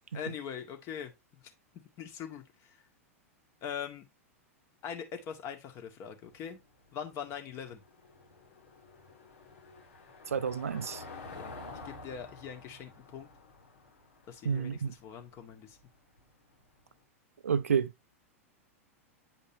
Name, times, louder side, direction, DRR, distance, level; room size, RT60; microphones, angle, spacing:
voice 1, 0.1-1.4 2.0-2.8 3.6-4.0 4.8-6.6 6.9-7.8 11.3-11.5 11.8-13.3 14.3-15.8, left 8 dB, 40° left, 1.9 m, -42 dB
Car passing by / Engine, 6.3-16.9, left 3 dB, 70° left, 2.4 m, -50 dB
voice 2, 10.3-11.0 14.4-14.9 17.4-17.9, right 7 dB, 75° right, 0.5 m, -30 dB
9.1 x 5.2 x 2.8 m
figure-of-eight pair, 95°, 8 cm